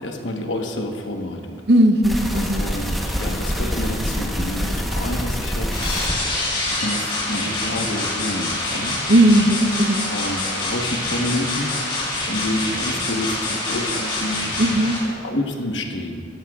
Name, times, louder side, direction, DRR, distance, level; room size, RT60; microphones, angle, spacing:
voice 1, 0.0-1.6 2.3-5.7 6.7-9.0 10.1-11.7 12.3-14.5 15.0-16.3, left 1 dB, 80° left, 3 dB, 1.2 m, -28 dB
voice 2, 1.7-2.6 9.1-10.1 14.6-15.0, right 1 dB, 60° right, 6 dB, 0.8 m, -17 dB
sound 1, 2.0-6.2 6.7-6.8 7.2-7.3 7.7-7.8 8.2-8.3 8.7-8.8 9.2-9.3 9.7-9.8 10.2-10.3 10.7-10.8 11.2-11.3 11.7-11.8 12.2-12.3, equal, ahead, 1.0 m, -25 dB
sound 2, 5.7-15.0, left 2 dB, 30° left, 3.4 m, -26 dB
17.0 x 13.0 x 2.4 m, 2.2 s
head